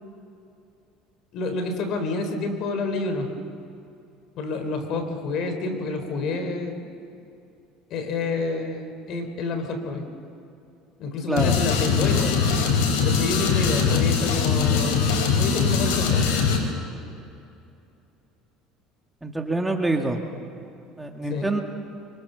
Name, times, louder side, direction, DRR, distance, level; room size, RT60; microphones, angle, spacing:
voice 1, 1.3-3.3 4.4-6.9 7.9-10.0 11.0-12.4 12.9-16.3 21.3-21.5, left 3 dB, 55° left, 6 dB, 4.0 m, -29 dB
sound 1, 11.4-16.6, left 6 dB, 85° left, 4.9 m, -21 dB
voice 2, 19.2-20.2 21.0-21.6, right 2 dB, 10° right, 3 dB, 2.0 m, -25 dB
27.0 x 24.5 x 7.0 m, 2.7 s
cardioid pair, 130°, 0 cm